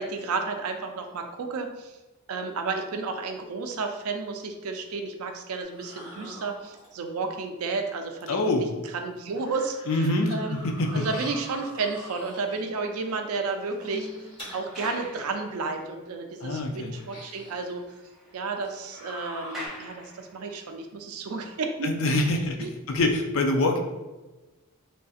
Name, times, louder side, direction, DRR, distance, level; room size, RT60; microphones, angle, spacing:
voice 1, 0.0-2.0 2.3-8.4 8.9-10.6 10.9-14.1 14.5-17.8 18.3-21.9 22.6-22.7, right 4 dB, 75° right, 5 dB, 0.4 m, -32 dB
sound 1, 5.6-7.1 8.4-8.5 9.1-12.7 13.6-15.3 15.8-15.9 16.9-17.8 18.6-19.7, left 1 dB, 20° left, 1.1 m, -44 dB
voice 2, 8.3-8.7 9.9-10.3 10.6-11.1 16.4-16.9 21.8-23.8, left 2 dB, 60° left, 3 dB, 0.4 m, -25 dB
sound 2, 12.6-16.3 16.6-16.7 17.1-17.2 17.4-20.7 21.4-21.6, equal, ahead, 0.5 m, -46 dB
3.2 x 2.7 x 2.4 m, 1.1 s
head